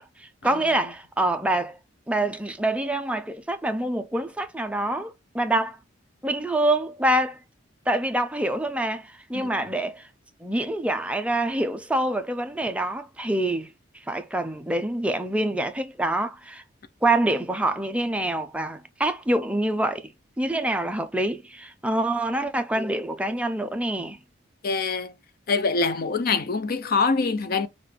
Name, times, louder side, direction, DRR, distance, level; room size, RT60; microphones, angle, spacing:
voice 1, 0.0-1.8 2.1-5.8 6.2-7.4 7.9-10.1 10.4-13.7 14.1-16.6 17.0-20.1 20.4-24.2, right 1 dB, 5° right, 0.5 m, -26 dB
voice 2, 24.6-25.1 25.5-27.7, left 4 dB, 50° left, 0.5 m, -24 dB
5.9 x 2.5 x 3.2 m
head